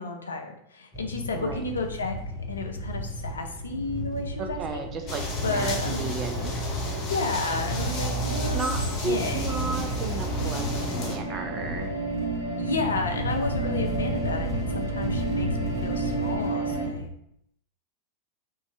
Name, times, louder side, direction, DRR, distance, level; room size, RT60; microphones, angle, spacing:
voice 1, 0.0-2.2 2.5-4.8 5.4-6.0 6.9-8.7 9.1-9.9 12.6-17.1, left 3 dB, 70° left, 4 dB, 0.5 m, -32 dB
sound 1, 0.9-17.1, equal, ahead, 0.9 m, -35 dB
voice 2, 1.3-1.6 4.4-6.6 8.3-11.9, right 4 dB, 30° right, 5 dB, 0.4 m, -34 dB
sound 2, 3.8-16.9, right 3 dB, 85° right, 0.7 m, -34 dB
sound 3, 5.1-11.2, equal, 35° left, 0.7 m, -30 dB
3.0 x 2.7 x 3.3 m, 0.75 s
figure-of-eight pair, 90°, 0 cm